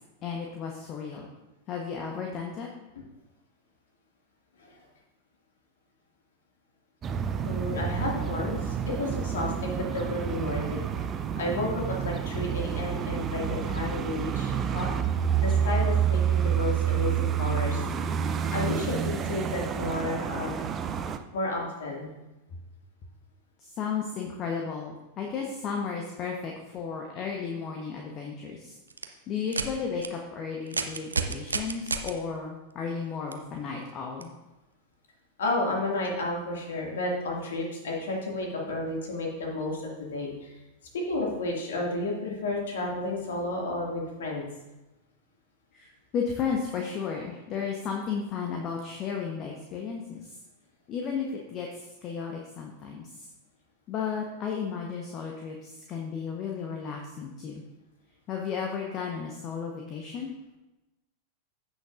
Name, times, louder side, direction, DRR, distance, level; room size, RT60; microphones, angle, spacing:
voice 1, 0.2-1.3 1.7-2.7 23.6-28.7 29.3-34.3 45.7-45.9 46.1-50.3 50.9-53.1 53.9-57.6 58.3-60.3, left 6 dB, 35° left, 1 dB, 1.1 m, -34 dB
sound 1, 7.0-21.2, right 8 dB, 25° right, 0.6 m, -29 dB
voice 2, 7.4-10.8 11.4-14.9 15.4-17.8 18.5-20.6 21.3-22.1 35.4-40.5 40.9-44.4, left 2 dB, 60° left, -1 dB, 2.2 m, -32 dB
sound 2, 28.9-29.0 29.5-29.7 30.0-30.1 30.7-32.1 33.3-33.4 34.2-34.3, right 4 dB, 75° right, 0.6 m, -30 dB
15.5 x 6.3 x 2.6 m, 1.0 s
figure-of-eight pair, 90°, 0 cm